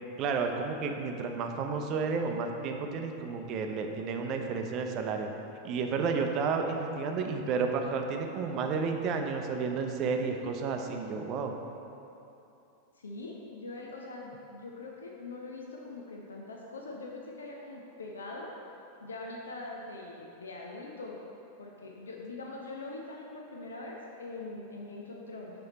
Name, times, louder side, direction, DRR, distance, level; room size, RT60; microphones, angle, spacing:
voice 1, 0.2-5.3 5.6-11.5, right 5 dB, 35° right, 4 dB, 0.5 m, -31 dB
voice 2, 13.0-18.5 19.0-21.2 21.6-25.5, left 2 dB, 70° left, -1 dB, 0.5 m, -42 dB
6.5 x 4.3 x 4.1 m, 2.8 s
figure-of-eight pair, 90°, 0 cm